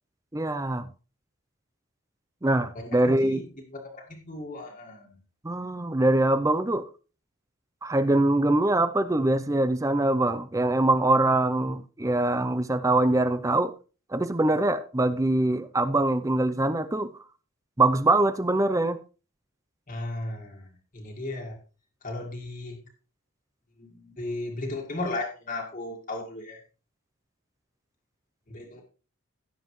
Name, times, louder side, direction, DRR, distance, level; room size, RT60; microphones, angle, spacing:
voice 1, 0.3-0.9 2.4-3.4 5.4-6.9 7.8-13.7 14.1-17.1 17.8-19.0, right 2 dB, 15° right, 0.5 m, -23 dB
voice 2, 2.8-5.2 19.9-20.7 20.9-21.6 22.0-22.9 23.8-26.6 28.5-28.8, left 2 dB, 40° left, 1.9 m, -36 dB
16.5 x 7.3 x 3.1 m
head